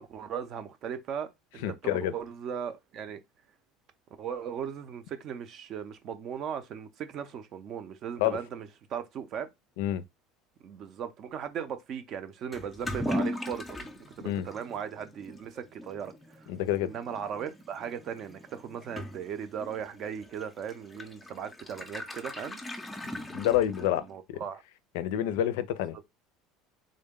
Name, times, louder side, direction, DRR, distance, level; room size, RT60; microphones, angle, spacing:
voice 1, 0.0-3.2 4.2-9.5 10.6-13.8 14.2-16.1 16.8-22.6 23.8-24.6, right 8 dB, 40° right, 0.5 m, -38 dB
voice 2, 1.6-2.1 8.2-8.4 9.8-10.0 14.2-14.5 16.5-16.9 23.3-24.0 24.3-24.4 24.9-26.1, left 12 dB, 85° left, 0.4 m, -28 dB
Toilet flush / Liquid, 12.5-24.2, left 1 dB, 10° left, 0.5 m, -39 dB
3.7 x 2.2 x 3.6 m
cardioid pair, 160°, 0 cm